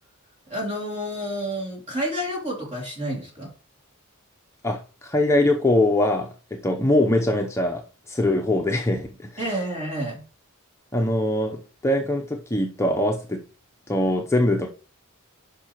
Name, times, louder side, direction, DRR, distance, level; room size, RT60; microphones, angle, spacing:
voice 1, 0.5-3.5 9.4-10.2, equal, 30° right, 3.2 m, -29 dB
voice 2, 4.6-7.8 8.1-9.3 10.9-13.4 13.9-14.7, left 1 dB, 15° left, 0.7 m, -22 dB
8.4 x 5.7 x 3.0 m
head